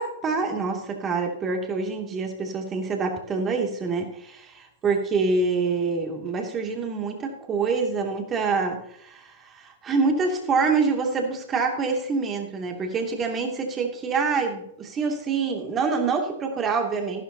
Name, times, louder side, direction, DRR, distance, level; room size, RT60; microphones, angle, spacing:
voice 1, 0.0-4.3 4.8-17.2, right 4 dB, 25° right, 2 dB, 2.6 m, -26 dB
14.5 x 12.0 x 2.9 m, 0.74 s
figure-of-eight pair, 105°, 0 cm